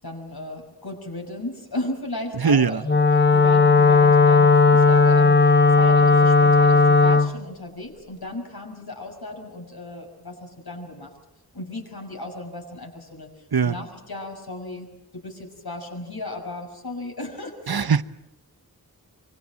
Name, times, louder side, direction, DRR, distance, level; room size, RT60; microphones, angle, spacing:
voice 1, 0.0-3.0 3.3-11.1 11.5-13.3 13.6-14.9 15.2-17.9, left 2 dB, 85° left, 6.1 m, -35 dB
voice 2, 2.4-2.8 13.5-13.8 17.7-18.0, right 6 dB, 75° right, 0.9 m, -20 dB
Wind instrument woodwind instrument, 2.8-7.3, left 4 dB, 30° left, 1.1 m, -15 dB
26.5 x 25.0 x 7.6 m
wide cardioid pair, 50°, 37 cm